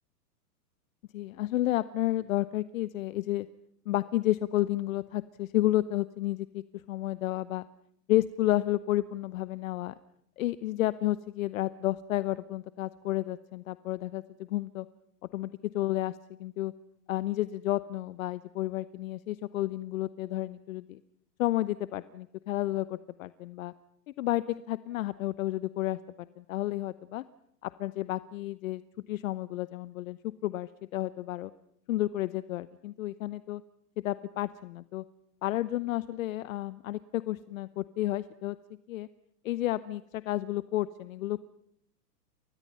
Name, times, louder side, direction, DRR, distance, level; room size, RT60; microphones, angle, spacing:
voice 1, 1.1-3.5 3.9-7.7 8.1-9.9 10.4-14.9 15.3-16.7 17.1-21.0 21.4-23.7 24.2-26.0 26.4-27.2 27.6-28.8 29.1-31.5 31.9-33.6 34.0-35.0 35.4-38.6 38.9-39.1 39.4-41.4, left 15 dB, 55° left, 15 dB, 0.9 m, -31 dB
29.5 x 26.0 x 5.6 m, 0.69 s
hypercardioid pair, 140°, 49 cm